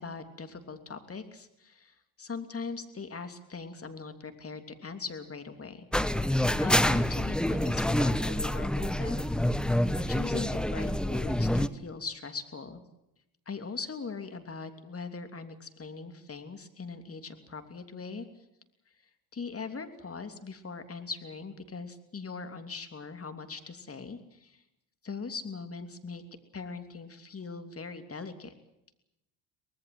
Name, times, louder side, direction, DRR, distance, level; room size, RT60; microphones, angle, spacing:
voice 1, 0.0-5.9 6.6-9.3 10.0-12.8 13.5-18.3 19.3-24.6 25.0-26.2 26.5-28.5, left 4 dB, 30° left, 8 dB, 3.0 m, -41 dB
sound 1, 5.9-11.7, left 1 dB, ahead, 1.0 m, -27 dB
24.0 x 19.5 x 7.8 m, 0.86 s
supercardioid pair, 75°, 48 cm